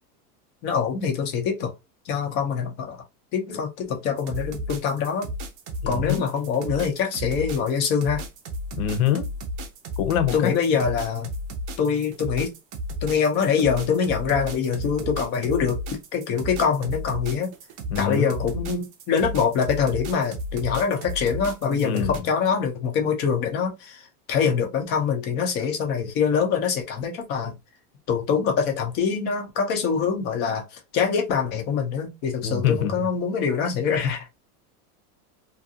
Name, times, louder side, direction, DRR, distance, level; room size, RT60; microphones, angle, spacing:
voice 1, 0.6-1.7 2.1-3.0 3.3-5.3 5.9-8.2 10.3-11.3 11.8-12.5 13.0-15.8 16.1-17.5 18.0-27.6 28.1-34.4, left 6 dB, 25° left, 0.4 m, -24 dB
sound 1, 4.2-22.2, equal, 35° right, 0.5 m, -33 dB
voice 2, 5.8-6.2 8.7-9.3 10.0-10.5 17.9-18.3 21.8-22.2 32.4-32.9, left 9 dB, 70° left, 0.8 m, -24 dB
2.5 x 2.3 x 2.6 m
supercardioid pair, 150°, 45 cm